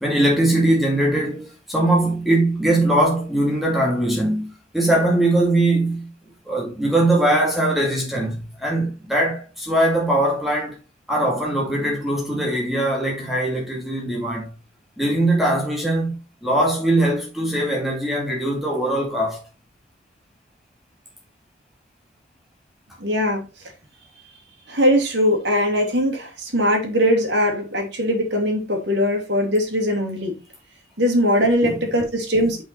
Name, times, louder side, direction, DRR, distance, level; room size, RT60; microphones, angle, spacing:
voice 1, 0.0-6.1 6.5-10.8 11.1-14.5 15.0-19.4 31.6-31.8 32.4-32.5, right 1 dB, ahead, 2.2 m, -21 dB
voice 2, 23.0-23.4 24.7-30.3 31.0-32.6, equal, 60° right, 2.6 m, -20 dB
6.0 x 5.8 x 4.4 m
head